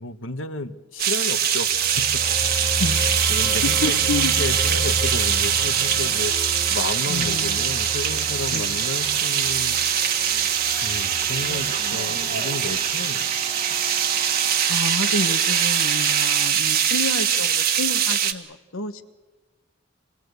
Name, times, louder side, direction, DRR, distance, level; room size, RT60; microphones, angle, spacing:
voice 1, 0.0-2.1 3.3-9.8 10.8-13.5, left 2 dB, 70° left, 11 dB, 1.3 m, -32 dB
sound 1, 1.0-18.3, right 8 dB, 50° right, 1.5 m, -22 dB
sound 2, 1.5-12.3 12.6-12.7, equal, 10° left, 1.4 m, -33 dB
sound 3, 2.2-16.5, right 5 dB, 30° right, 1.0 m, -37 dB
voice 2, 2.8-3.1 3.8-4.3 7.1-7.8 8.5-8.8 14.7-19.0, left 2 dB, 85° left, 10 dB, 1.4 m, -29 dB
27.0 x 20.5 x 8.1 m, 1.2 s
head